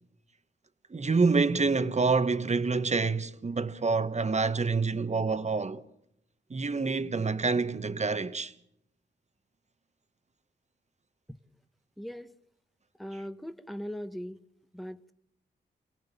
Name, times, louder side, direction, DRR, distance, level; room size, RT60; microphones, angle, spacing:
voice 1, 0.9-5.8 6.5-8.5 13.1-13.2, right 4 dB, 35° right, 1.3 m, -27 dB
voice 2, 12.0-12.3 13.0-14.4 14.7-15.1, equal, ahead, 1.2 m, -39 dB
29.5 x 18.5 x 6.9 m
cardioid pair, 50°, 19 cm